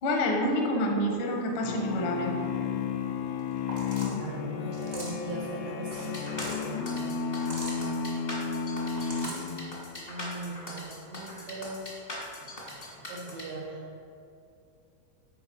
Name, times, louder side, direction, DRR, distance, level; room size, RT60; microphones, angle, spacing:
voice 1, 0.0-2.3, left 1 dB, 70° left, 0 dB, 1.2 m, -27 dB
sound 1, 1.6-10.0, left 6 dB, 90° left, 2.4 m, -33 dB
sound 2, 3.7-4.2 4.7-5.3 6.1-6.6 7.3-7.8 8.8-9.4, right 1 dB, 70° right, 0.5 m, -40 dB
voice 2, 4.1-7.5 9.0-9.7 10.1-11.9 12.4-13.8, right 2 dB, 90° right, -5 dB, 2.9 m, -40 dB
sound 3, 5.9-13.4, left 1 dB, 45° left, 0.7 m, -41 dB
10.0 x 4.6 x 5.3 m, 2.7 s
omnidirectional pair, 4.2 m